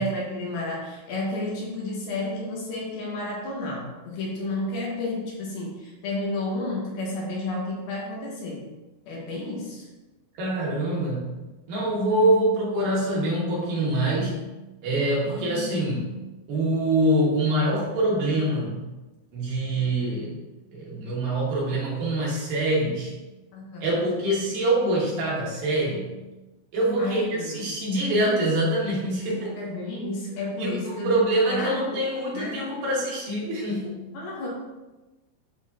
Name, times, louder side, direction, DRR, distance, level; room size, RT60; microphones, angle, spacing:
voice 1, 0.0-8.7 9.1-9.9 15.3-15.7 23.5-24.0 27.0-27.7 28.3-28.4 29.6-31.2 31.5-31.9 32.3-32.6 34.1-34.5, left 2 dB, 75° left, -3 dB, 3.1 m, -31 dB
voice 2, 10.4-11.3 11.7-14.4 14.8-16.1 16.5-18.9 19.3-20.4 20.7-23.1 23.8-26.1 26.7-29.5 30.6-34.0, right 1 dB, 65° right, -5 dB, 3.0 m, -25 dB
11.0 x 3.8 x 2.7 m, 1.1 s
omnidirectional pair, 4.4 m